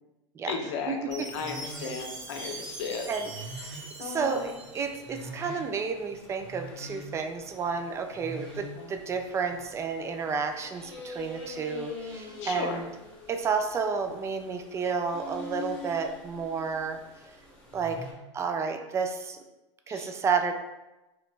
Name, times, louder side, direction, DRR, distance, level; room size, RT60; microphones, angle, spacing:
voice 1, 0.4-3.1 4.0-4.6 8.8-8.9 12.4-12.8 19.9-20.1, left 5 dB, 65° left, 3 dB, 0.6 m, -35 dB
Chime, 1.1-5.2, right 2 dB, 85° right, 1.4 m, -42 dB
sound 1, 1.3-18.1, left 1 dB, 5° left, 0.9 m, -44 dB
voice 2, 4.0-12.9 13.3-17.0 17.7-18.0 18.3-19.4 19.9-20.5, right 5 dB, 20° right, 6 dB, 0.3 m, -31 dB
2.9 x 2.5 x 3.2 m, 1.0 s
hypercardioid pair, 105°, 16 cm